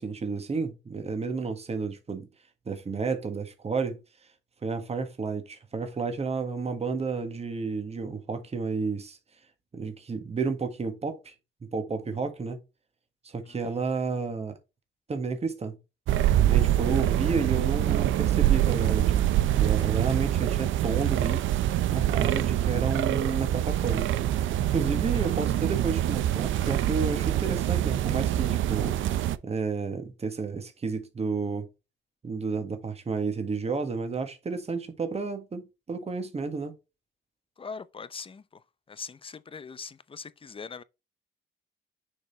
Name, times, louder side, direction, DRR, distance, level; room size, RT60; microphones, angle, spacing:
voice 1, 0.0-2.3 2.6-4.0 4.6-9.2 9.7-11.3 11.7-12.6 13.2-14.5 15.1-15.8 16.5-21.4 21.9-24.1 24.7-28.9 29.4-31.7 32.2-36.7, right 4 dB, 30° right, 1.6 m, -31 dB
sound 1, 16.1-29.4, right 12 dB, 75° right, 0.6 m, -25 dB
voice 2, 37.6-38.6 38.9-40.8, left 5 dB, 25° left, 0.6 m, -42 dB
6.6 x 4.0 x 4.0 m
cardioid pair, 90°, 20 cm